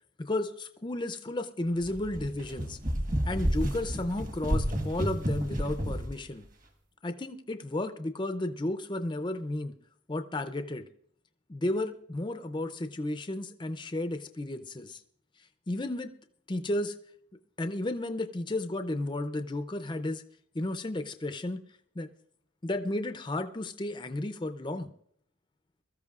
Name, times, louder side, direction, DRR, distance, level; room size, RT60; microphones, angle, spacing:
voice 1, 0.2-2.8 3.3-6.4 7.0-9.7 10.1-10.8 11.5-15.0 15.7-16.1 16.5-17.0 17.6-20.2 20.5-21.6 22.0-22.1 22.6-24.9, left 1 dB, 20° left, 9 dB, 0.5 m, -33 dB
Running down carpeted stairs, 1.8-6.2, equal, 40° right, 1.4 m, -30 dB
22.0 x 13.5 x 2.4 m, 0.66 s
head